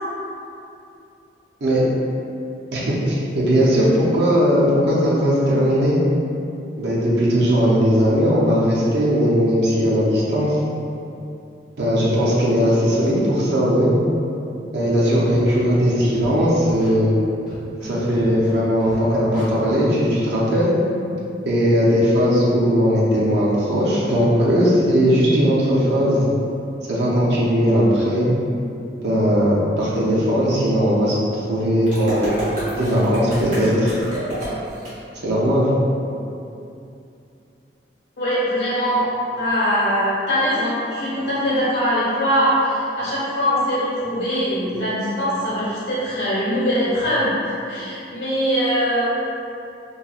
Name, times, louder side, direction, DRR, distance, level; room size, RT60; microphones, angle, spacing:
voice 1, 2.7-6.0 6.8-10.6 11.8-13.9 14.7-17.2 17.8-20.7 21.5-26.2 26.9-28.3 29.0-32.2 32.7-34.0 35.2-35.7, equal, 65° right, -7 dB, 0.5 m, -18 dB
Scratching (performance technique), 15.0-15.6 16.1-16.3 16.6-16.9 17.5-17.9 18.1-18.5 18.8-19.0 19.3-19.4, left 1 dB, 50° left, 1.1 m, -39 dB
sound 1, 31.9-34.9, right 1 dB, 45° right, 0.9 m, -28 dB
voice 2, 38.2-39.0 39.4-49.0, equal, 85° left, -9 dB, 1.1 m, -22 dB
3.0 x 2.3 x 2.3 m, 2.7 s
head